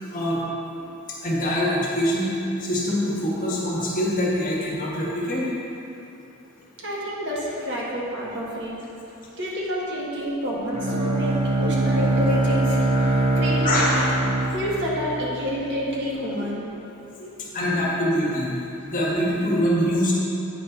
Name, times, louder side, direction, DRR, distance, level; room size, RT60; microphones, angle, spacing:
voice 1, 0.1-0.4 1.2-2.3 2.6-5.4 11.6-11.7 12.9-14.0 17.2-18.5 18.8-20.1, equal, 40° left, -6 dB, 1.6 m, -24 dB
voice 2, 6.8-8.7 9.4-14.1 14.5-16.6, equal, 55° right, -5 dB, 1.6 m, -28 dB
Bowed string instrument, 10.7-15.7, right 2 dB, 30° right, 0.9 m, -23 dB
8.9 x 4.4 x 5.4 m, 2.9 s
head